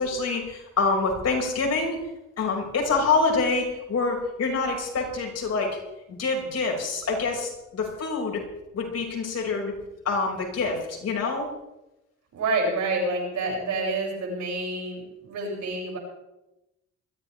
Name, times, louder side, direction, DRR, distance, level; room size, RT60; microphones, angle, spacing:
voice 1, 0.0-2.0 2.4-5.8 6.1-8.4 8.7-9.7 10.0-11.5, left 4 dB, 55° left, -1 dB, 6.0 m, -26 dB
voice 2, 12.3-16.0, right 2 dB, 70° right, -2 dB, 7.2 m, -28 dB
22.0 x 15.0 x 3.5 m, 0.95 s
cardioid pair, 90°, 30 cm